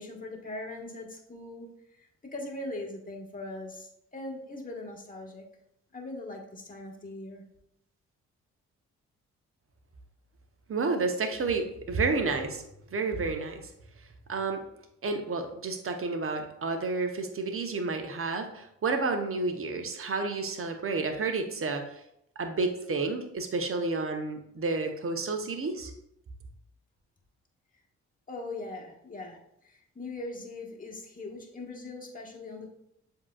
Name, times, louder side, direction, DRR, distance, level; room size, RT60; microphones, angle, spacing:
voice 1, 0.0-1.7 2.0-5.4 5.9-7.4 28.3-29.4 29.6-32.7, left 2 dB, 25° left, -1 dB, 1.3 m, -40 dB
voice 2, 10.7-12.6 12.9-13.6 14.3-14.6 15.0-21.8 22.4-25.9, right 3 dB, 40° right, 5 dB, 0.9 m, -30 dB
7.2 x 2.8 x 2.4 m, 0.76 s
hypercardioid pair, 40°, 35 cm